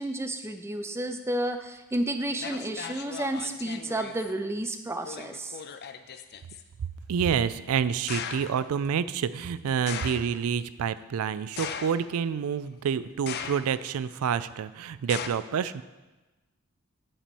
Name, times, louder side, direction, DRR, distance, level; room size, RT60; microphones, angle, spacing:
voice 1, 0.0-5.6, right 1 dB, 10° right, 7 dB, 0.5 m, -31 dB
sound 1, 1.9-2.0 2.4-4.3 5.0-6.6 8.1-8.6 9.9-10.4 11.6-12.3 13.3-13.9 15.1-15.3, left 7 dB, 45° left, 0.5 m, -38 dB
voice 2, 7.1-15.8, right 7 dB, 75° right, 15 dB, 0.4 m, -28 dB
8.8 x 4.3 x 7.0 m, 1.1 s
head